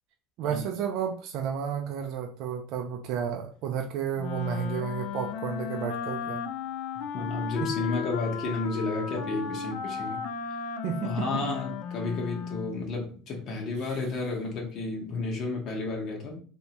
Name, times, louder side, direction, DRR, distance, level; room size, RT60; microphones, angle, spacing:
voice 1, 0.4-6.4 7.6-7.7 10.8-11.5 13.8-14.0, right 8 dB, 60° right, 4 dB, 0.4 m, -32 dB
Wind instrument woodwind instrument, 4.2-12.8, left 7 dB, 65° left, 0.4 m, -35 dB
voice 2, 7.1-10.2 11.0-16.4, left 3 dB, 45° left, 1 dB, 0.9 m, -32 dB
3.2 x 2.7 x 2.8 m, 0.43 s
supercardioid pair, 120°, 0 cm